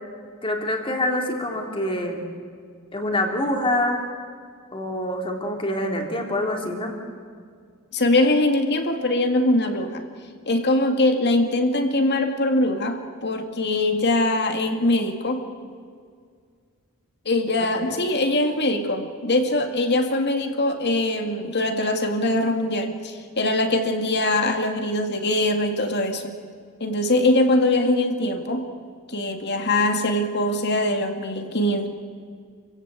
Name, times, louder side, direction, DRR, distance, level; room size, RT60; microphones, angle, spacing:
voice 1, 0.4-2.3 2.9-4.0 4.7-6.9 17.7-18.0, left 1 dB, 25° left, 2 dB, 2.9 m, -26 dB
voice 2, 7.9-10.0 10.5-15.4 17.3-26.3 26.8-28.6 29.1-31.9, left 1 dB, 50° left, 5 dB, 2.3 m, -22 dB
28.0 x 16.5 x 8.2 m, 2.1 s
head